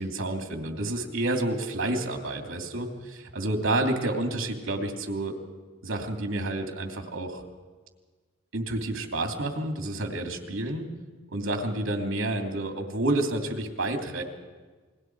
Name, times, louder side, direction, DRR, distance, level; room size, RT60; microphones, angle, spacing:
voice 1, 0.0-5.4 5.8-7.4 8.5-10.9 11.3-14.2, right 2 dB, 90° right, 4 dB, 2.7 m, -29 dB
28.5 x 21.0 x 4.6 m, 1.4 s
head